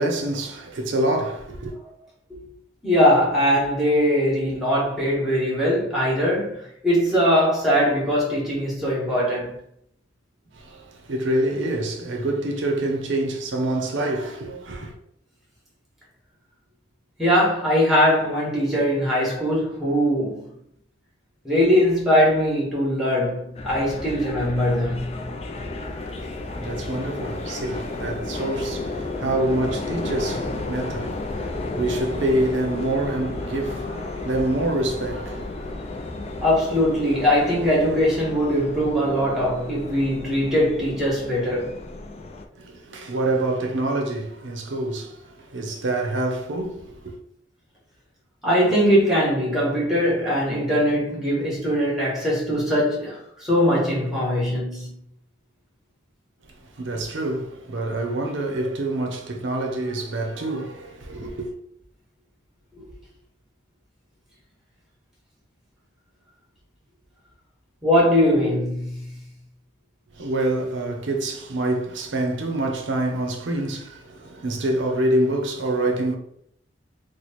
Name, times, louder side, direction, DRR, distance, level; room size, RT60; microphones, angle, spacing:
voice 1, 0.0-1.7 10.5-15.0 26.0-35.8 42.5-47.1 56.4-61.5 70.1-76.1, right 1 dB, 75° right, 0.6 m, -26 dB
voice 2, 2.8-9.6 17.2-20.5 21.4-25.2 36.4-41.7 48.4-55.0 67.8-69.1, equal, ahead, 1.2 m, -21 dB
sound 1, 23.5-42.4, left 2 dB, 35° left, 0.4 m, -33 dB
3.0 x 2.1 x 4.1 m
head